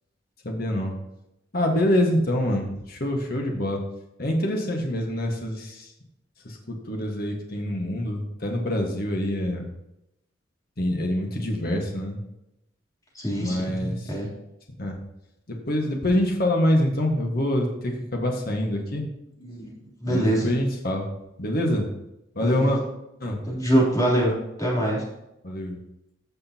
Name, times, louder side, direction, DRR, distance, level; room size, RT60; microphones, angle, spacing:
voice 1, 0.4-0.9 1.5-3.8 4.2-5.9 6.4-9.7 10.8-12.2 13.3-14.1 14.8-15.0 15.6-19.0 20.0-21.1 21.4-21.9 22.3-22.8 23.2-23.4 25.4-25.8, left 1 dB, 55° left, 1 dB, 1.7 m, -25 dB
voice 2, 13.2-14.3 19.4-19.7 20.0-20.5 22.4-22.7 23.5-24.3 24.6-25.0, right 1 dB, 20° left, -5 dB, 3.5 m, -24 dB
15.0 x 6.4 x 3.0 m, 0.87 s
head